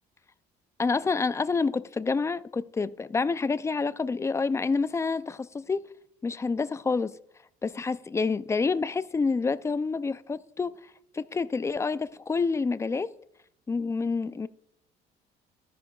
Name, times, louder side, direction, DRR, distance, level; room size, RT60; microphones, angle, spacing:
voice 1, 0.8-5.9 6.2-7.2 7.6-10.8 11.1-13.1 13.7-14.5, left 4 dB, 15° left, 0.3 m, -28 dB
13.5 x 10.0 x 2.3 m
cardioid pair, 110°, 17 cm